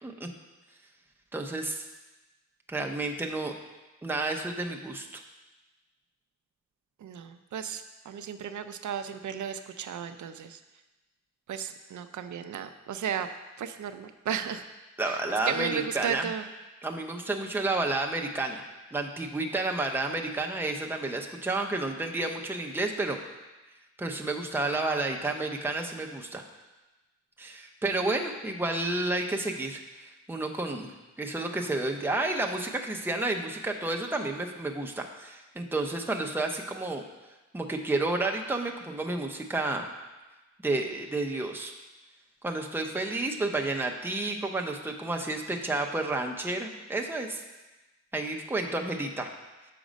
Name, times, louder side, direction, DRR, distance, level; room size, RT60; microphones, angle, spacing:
voice 1, 1.3-1.9 2.7-3.5 4.0-5.1 15.0-16.3 16.8-18.6 18.9-23.2 24.0-26.4 27.4-30.9 31.2-37.0 37.5-39.9 40.6-41.7 42.4-47.4 48.1-49.3, right 2 dB, 10° right, 1 dB, 0.5 m, -31 dB
voice 2, 7.0-10.6 11.5-13.3 13.6-14.6 15.0-16.4, right 8 dB, 85° right, 9 dB, 0.4 m, -34 dB
6.3 x 5.1 x 5.0 m, 1.1 s
wide cardioid pair, 150°, 29 cm